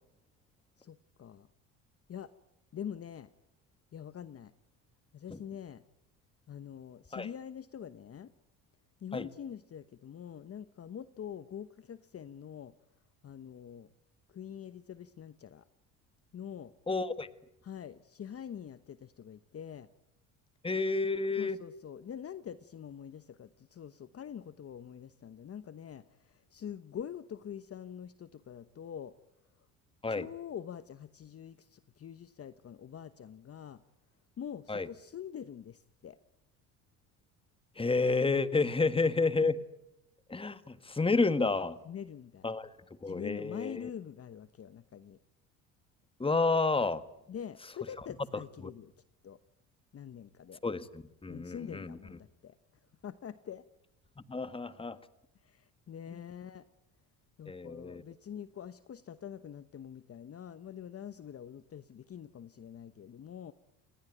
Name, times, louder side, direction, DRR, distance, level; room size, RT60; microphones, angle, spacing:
voice 1, 0.8-1.5 2.1-2.3 2.7-3.3 3.9-4.5 5.1-5.8 6.5-8.3 9.0-12.7 13.2-13.9 14.3-15.6 16.3-16.7 17.6-19.9 21.4-29.2 30.1-33.8 34.4-36.2 41.8-42.5 43.0-45.2 47.3-48.9 49.2-49.4 49.9-50.6 51.3-52.5 53.0-53.6 55.4-56.7 57.4-63.5, left 8 dB, 40° left, 13 dB, 1.1 m, -45 dB
voice 2, 16.9-17.3 20.6-21.6 30.0-30.3 34.7-34.9 37.8-39.6 40.3-41.8 42.4-42.7 43.0-43.9 46.2-47.0 50.6-52.0 54.3-55.0 56.1-56.2 57.5-58.0, left 3 dB, 15° left, 13 dB, 1.6 m, -30 dB
29.0 x 19.0 x 9.2 m, 0.86 s
supercardioid pair, 75°, 38 cm